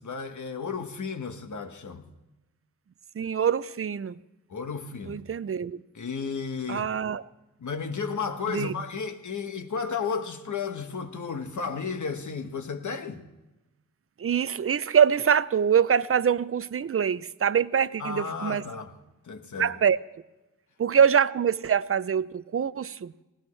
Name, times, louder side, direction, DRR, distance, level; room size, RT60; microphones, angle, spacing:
voice 1, 0.0-2.0 4.5-5.2 5.9-6.9 7.6-13.2 18.0-18.9 19.2-19.7, left 5 dB, 60° left, 1.3 m, -33 dB
voice 2, 3.2-4.2 5.1-5.8 6.7-7.2 8.5-8.7 14.2-18.7 19.6-20.0 20.8-23.1, right 7 dB, 40° right, 0.5 m, -24 dB
19.5 x 17.5 x 3.2 m
wide cardioid pair, 105°, 34 cm